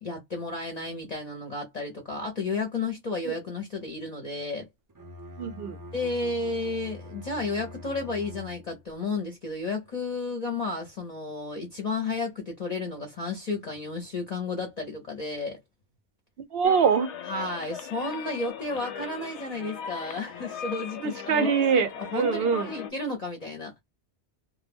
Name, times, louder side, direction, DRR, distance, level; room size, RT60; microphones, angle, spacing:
voice 1, 0.0-4.7 5.9-15.6 17.3-21.5 21.7-23.8, left 3 dB, 45° left, 0.7 m, -32 dB
Bowed string instrument, 4.9-9.0, left 1 dB, 25° right, 0.4 m, -44 dB
voice 2, 5.4-5.8 16.5-17.1 21.0-22.7, right 6 dB, 65° right, 0.7 m, -24 dB
sound 1, 16.6-22.9, left 7 dB, 90° left, 0.9 m, -38 dB
2.2 x 2.0 x 3.4 m
omnidirectional pair, 1.2 m